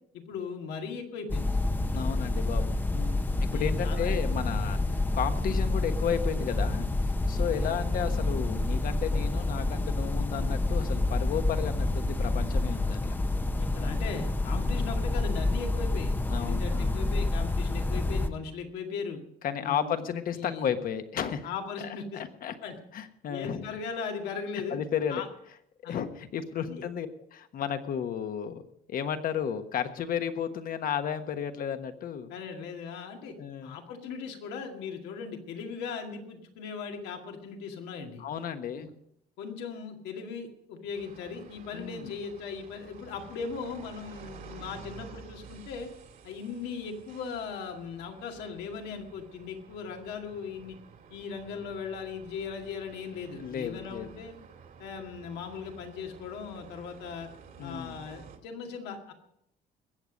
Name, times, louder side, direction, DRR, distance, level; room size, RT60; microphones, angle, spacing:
voice 1, 0.3-1.6 2.9-3.2 3.5-4.2 4.9-5.0 7.6-7.7 13.5-19.2 19.6-20.1 20.3-20.7 21.4-22.2 22.6-22.8 23.3-24.8 25.1-25.3 25.8-26.0 26.7-26.9 32.3-33.4 33.6-38.3 38.7-38.9 39.4-45.9 46.2-50.8 51.1-54.4 54.8-57.3 57.6-59.1, left 5 dB, 85° left, 3 dB, 2.2 m, -38 dB
sound 1, 1.3-18.3, left 2 dB, 10° left, 0.8 m, -28 dB
voice 2, 1.9-2.8 3.4-6.8 7.3-13.0 16.3-17.0 19.4-21.5 21.8-22.5 22.9-23.7 24.7-25.2 25.8-28.6 28.9-32.3 33.4-33.8 38.2-38.9 41.7-42.1 53.4-54.1 57.6-58.0, left 8 dB, 55° left, 8 dB, 1.3 m, -33 dB
sound 2, 40.9-58.4, right 6 dB, 55° right, 2.4 m, -51 dB
21.0 x 8.2 x 5.2 m, 0.76 s
cardioid pair, 110°, 17 cm